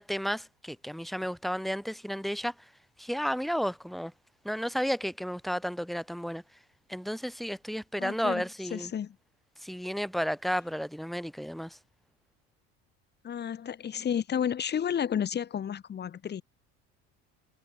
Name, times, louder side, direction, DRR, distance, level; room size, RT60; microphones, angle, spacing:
voice 1, 0.0-2.5 3.0-4.1 4.4-6.4 6.9-8.9 9.6-11.8, equal, ahead, 2.2 m, -32 dB
voice 2, 8.0-8.4 8.7-9.2 13.2-16.4, left 8 dB, 35° left, 3.0 m, -31 dB
supercardioid pair, 120°, 30 cm